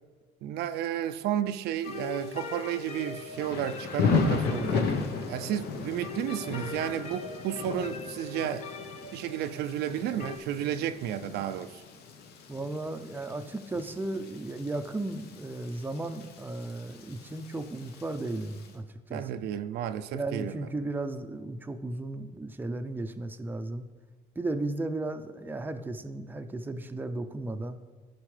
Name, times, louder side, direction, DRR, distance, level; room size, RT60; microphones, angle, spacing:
voice 1, 0.4-5.0 5.3-8.7 9.1-11.8 19.1-20.7, right 10 dB, 75° right, 0.4 m, -32 dB
Thunder / Rain, 1.8-18.7, left 5 dB, 75° left, 0.9 m, -35 dB
sound 1, 1.8-10.4, left 4 dB, 45° left, 0.9 m, -42 dB
voice 2, 12.5-19.4 20.1-23.9 24.4-27.8, right 2 dB, 10° right, 0.5 m, -35 dB
14.0 x 5.2 x 3.3 m
cardioid pair, 110°, 17 cm